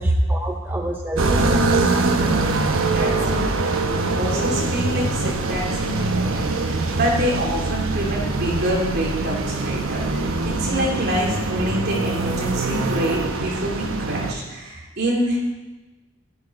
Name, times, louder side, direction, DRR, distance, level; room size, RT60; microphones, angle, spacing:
voice 1, 0.0-2.5, right 1 dB, 10° right, 4 dB, 0.5 m, -32 dB
sound 1, 1.2-14.3, right 3 dB, 75° right, 1.0 m, -23 dB
voice 2, 2.8-15.4, equal, 50° right, -3 dB, 3.0 m, -26 dB
11.0 x 11.0 x 5.3 m, 1.2 s
head